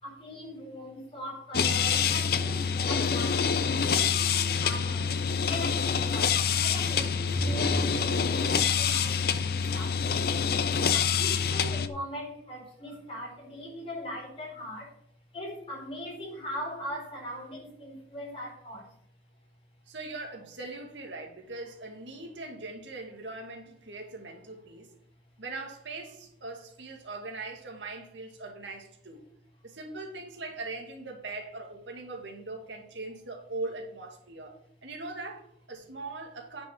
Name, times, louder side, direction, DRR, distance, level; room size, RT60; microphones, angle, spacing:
voice 1, 0.0-3.5 3.8-5.1 5.4-10.3 10.9-14.9 15.3-18.9, equal, 30° left, 4.5 m, -39 dB
sound 1, 1.5-11.9, left 6 dB, 55° left, 0.6 m, -26 dB
voice 2, 19.9-24.9 25.4-29.2 29.6-34.5 34.8-36.7, right 2 dB, 85° right, 2.2 m, -40 dB
9.6 x 5.6 x 6.1 m
head